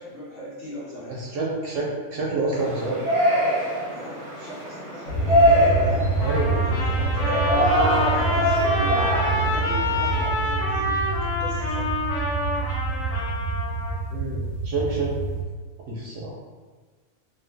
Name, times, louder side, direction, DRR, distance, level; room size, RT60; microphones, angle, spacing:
voice 1, 0.0-1.2 3.9-7.7 8.1-9.0 9.3-12.0, equal, 45° left, -9 dB, 0.9 m, -40 dB
voice 2, 1.2-3.0 6.2-6.7 14.1-15.1 15.9-16.3, right 3 dB, 65° right, -3 dB, 0.8 m, -28 dB
Yell, 2.5-10.2, equal, 40° right, 0.6 m, -24 dB
sound 1, 5.1-15.4, right 3 dB, 65° left, 1.2 m, -27 dB
Trumpet, 6.2-14.0, left 1 dB, 85° left, 1.4 m, -27 dB
3.1 x 2.2 x 3.3 m, 1.4 s
omnidirectional pair, 1.6 m